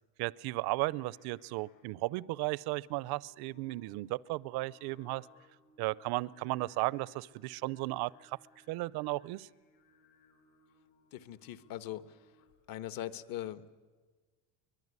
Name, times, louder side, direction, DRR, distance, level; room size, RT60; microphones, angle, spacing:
voice 1, 0.2-5.3 5.8-8.4 8.7-9.5, right 20 dB, 60° right, 22 dB, 0.7 m, -35 dB
Singing, 0.6-12.8, left 3 dB, 85° left, 6.8 m, -67 dB
voice 2, 11.1-12.3 12.7-13.7, left 12 dB, 50° left, 13 dB, 1.3 m, -41 dB
23.5 x 21.0 x 9.6 m, 1.4 s
cardioid pair, 130°, 44 cm